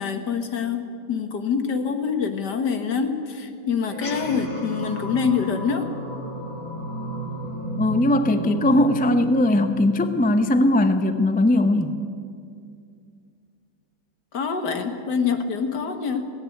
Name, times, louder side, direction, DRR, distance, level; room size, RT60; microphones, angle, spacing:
voice 1, 0.0-5.9 14.3-16.3, left 6 dB, 70° left, 7 dB, 2.1 m, -25 dB
sound 1, 3.9-10.6, right 1 dB, 55° left, 2.3 m, -33 dB
voice 2, 7.8-12.0, left 1 dB, 10° left, 9 dB, 0.4 m, -19 dB
17.5 x 16.5 x 9.4 m, 2.3 s
omnidirectional pair, 1.9 m